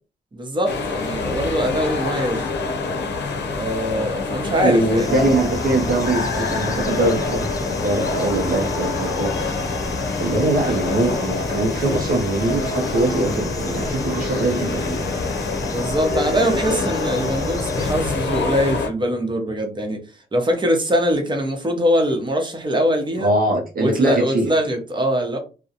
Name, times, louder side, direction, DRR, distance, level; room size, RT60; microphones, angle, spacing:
voice 1, 0.3-2.5 3.5-5.4 15.6-20.0 20.3-23.3 23.8-25.4, equal, 25° right, 0.8 m, -22 dB
sound 1, 0.7-18.9, left 4 dB, 70° left, 0.6 m, -26 dB
voice 2, 4.6-9.3 10.0-15.0 23.2-24.5, right 2 dB, 50° right, 0.5 m, -22 dB
sound 2, 5.0-17.9, left 2 dB, 20° left, 0.4 m, -31 dB
2.3 x 2.0 x 2.7 m
cardioid pair, 60°, 18 cm